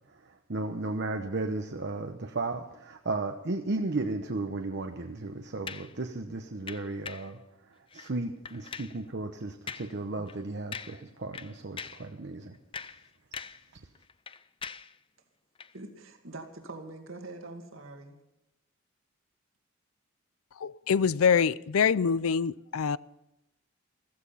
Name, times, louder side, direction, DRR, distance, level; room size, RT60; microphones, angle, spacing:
voice 1, 0.1-12.9, right 2 dB, 55° right, 0.9 m, -35 dB
sound 1, 5.7-6.0 6.7-7.3 7.9-8.1 8.4-9.0 9.7-10.0 10.3-10.4 10.7-11.1 11.3-12.1 12.5-13.7 13.9-15.0 15.6-15.7, left 6 dB, 25° left, 0.5 m, -42 dB
voice 2, 15.7-18.2, right 2 dB, 75° right, 2.3 m, -44 dB
voice 3, 20.5-23.0, left 6 dB, 85° left, 0.5 m, -25 dB
15.0 x 14.5 x 5.7 m
head